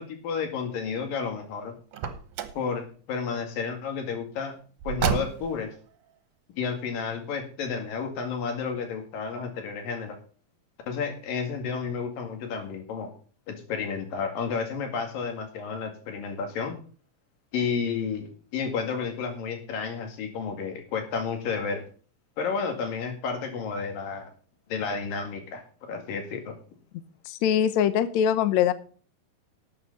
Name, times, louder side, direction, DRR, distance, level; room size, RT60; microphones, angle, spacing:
voice 1, 0.0-1.7 2.6-4.5 4.9-5.7 6.6-10.2 10.9-13.1 13.5-16.8 17.5-21.8 22.4-24.3 24.7-26.5, left 5 dB, 90° left, 5 dB, 3.9 m, -31 dB
Car, 1.9-2.7 4.8-5.7, right 8 dB, 70° right, 2.4 m, -29 dB
voice 2, 27.2-28.7, left 9 dB, 70° left, 13 dB, 1.8 m, -22 dB
12.0 x 8.0 x 5.4 m, 0.41 s
omnidirectional pair, 3.9 m